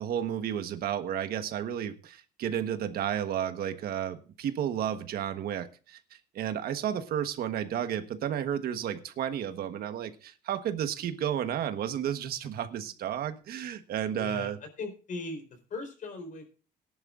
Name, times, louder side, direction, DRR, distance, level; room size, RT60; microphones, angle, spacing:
voice 1, 0.0-6.0 6.3-14.6, right 9 dB, 65° right, 1.3 m, -32 dB
voice 2, 14.2-16.5, left 3 dB, 50° left, 4.1 m, -39 dB
18.5 x 11.0 x 2.5 m
cardioid pair, 110°, 17 cm